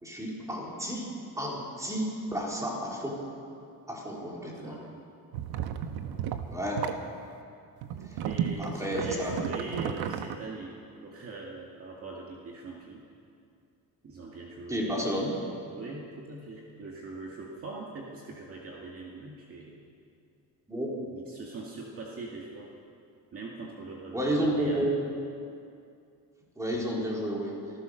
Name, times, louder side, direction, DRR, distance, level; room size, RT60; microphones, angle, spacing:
voice 1, 0.0-1.1 1.4-3.2 3.9-4.8 6.5-6.8 8.1-8.2 8.6-9.4 9.8-9.9 14.7-15.3 20.7-21.0 24.1-24.9 26.6-27.6, equal, 10° right, -3 dB, 4.1 m, -31 dB
voice 2, 4.2-5.1 5.9-6.2 8.2-10.7 11.0-13.0 14.0-15.2 15.7-19.8 21.0-22.7 23.3-24.9, right 3 dB, 40° right, -2 dB, 2.2 m, -42 dB
sound 1, 5.3-7.0 7.8-10.4, right 9 dB, 90° right, 1.3 m, -33 dB
26.0 x 15.5 x 6.6 m, 2.5 s
cardioid pair, 160°, 37 cm